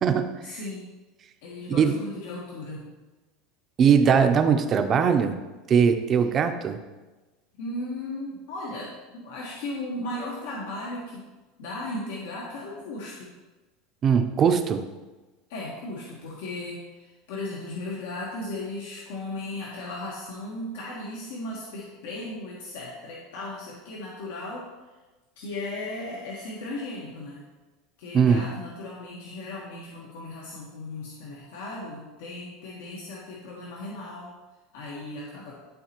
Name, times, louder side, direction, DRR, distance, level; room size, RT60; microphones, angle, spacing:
voice 1, 0.4-0.9 1.4-2.9 7.6-11.3 11.6-13.3 15.5-24.7 25.4-27.4 28.0-34.3 34.7-35.6, left 2 dB, 80° left, -4 dB, 1.3 m, -36 dB
voice 2, 3.8-5.4 5.7-6.8 14.0-14.8 28.1-28.4, right 7 dB, 30° right, 7 dB, 0.5 m, -20 dB
11.5 x 4.0 x 3.0 m, 1.2 s
supercardioid pair, 150°, 0 cm